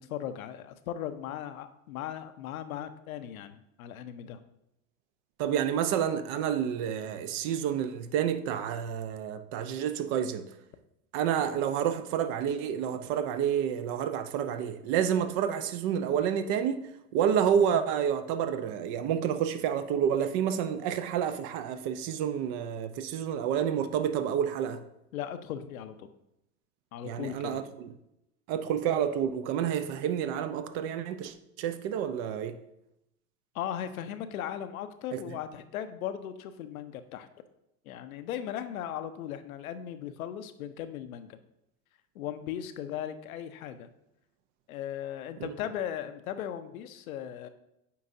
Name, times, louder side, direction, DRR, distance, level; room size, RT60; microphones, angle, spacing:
voice 1, 0.0-4.4 25.1-26.1 26.9-27.6 33.5-37.3 37.9-41.4 42.1-43.9 44.7-47.5, left 10 dB, 75° left, 0.7 m, -37 dB
voice 2, 5.4-10.4 11.1-24.8 27.0-27.9 28.5-32.5 45.4-45.5, right 8 dB, 50° right, 0.7 m, -29 dB
8.4 x 4.6 x 2.6 m
hypercardioid pair, 85°, 43 cm